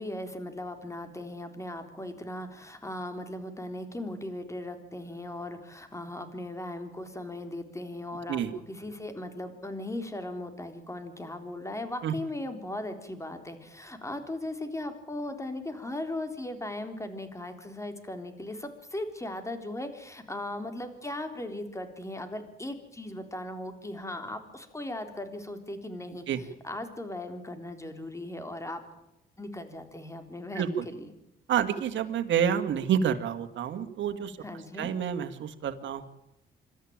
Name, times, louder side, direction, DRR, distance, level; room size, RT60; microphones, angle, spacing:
voice 1, 0.0-28.8 29.4-31.1 34.4-34.9, left 1 dB, 15° left, 8 dB, 3.7 m, -38 dB
voice 2, 31.5-34.4 34.8-36.1, right 8 dB, 70° right, 7 dB, 2.1 m, -28 dB
26.0 x 13.5 x 8.9 m, 0.87 s
cardioid pair, 90°, 20 cm